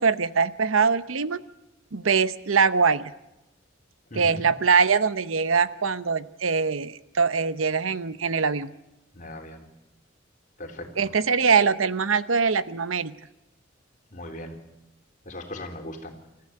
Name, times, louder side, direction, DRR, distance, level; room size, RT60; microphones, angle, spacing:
voice 1, 0.0-1.4 1.9-3.1 4.1-8.7 11.0-13.1, right 5 dB, 85° right, 14 dB, 0.9 m, -23 dB
voice 2, 4.1-4.4 9.1-9.6 10.6-11.1 14.1-14.6 15.3-16.2, left 1 dB, 40° left, 3 dB, 3.6 m, -38 dB
27.5 x 14.5 x 9.8 m, 0.95 s
head